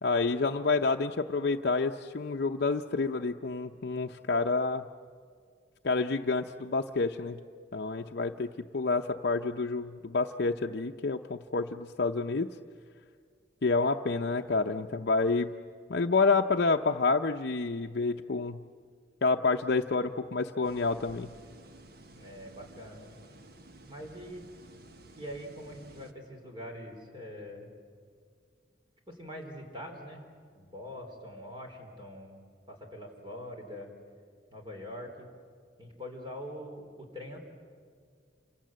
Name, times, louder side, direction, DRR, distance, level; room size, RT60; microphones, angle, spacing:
voice 1, 0.0-4.8 5.8-7.4 7.7-12.5 13.6-15.5 15.9-18.6 19.2-21.3, left 3 dB, 60° left, 3 dB, 0.7 m, -28 dB
sound 1, 20.6-26.1, right 1 dB, 55° right, 1.3 m, -53 dB
voice 2, 22.2-23.2 23.9-24.5 25.2-27.7 29.1-30.2 30.5-33.9 34.5-35.3 35.8-37.4, equal, 25° right, 2 dB, 4.2 m, -43 dB
28.0 x 25.5 x 7.6 m, 2.1 s
head